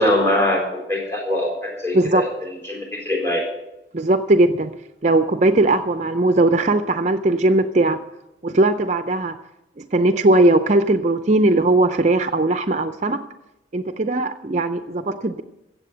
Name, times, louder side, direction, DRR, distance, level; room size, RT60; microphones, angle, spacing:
voice 1, 0.0-3.5, left 1 dB, 15° left, 0 dB, 3.7 m, -22 dB
voice 2, 1.9-2.3 3.9-4.7 5.0-8.0 8.4-9.4 9.8-13.2 13.7-15.4, right 2 dB, 40° right, 9 dB, 0.5 m, -18 dB
15.5 x 7.8 x 7.9 m, 0.96 s
head